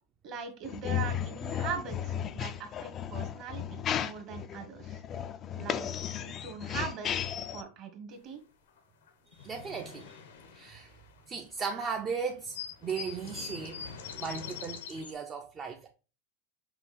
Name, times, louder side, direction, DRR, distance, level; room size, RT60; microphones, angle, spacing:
voice 1, 0.2-5.0 5.5-8.4, right 6 dB, 40° right, 1.2 m, -41 dB
sound 1, 0.6-7.6, left 9 dB, 30° left, 0.3 m, -34 dB
sound 2, 8.8-8.9 9.1-11.6 12.0-12.1 12.3-15.1, left 6 dB, 90° left, 0.9 m, -43 dB
voice 2, 9.4-10.2 10.5-10.9 11.3-13.8 14.2-15.9, right 5 dB, 25° right, 0.5 m, -37 dB
5.7 x 2.3 x 4.1 m
supercardioid pair, 135°, 0 cm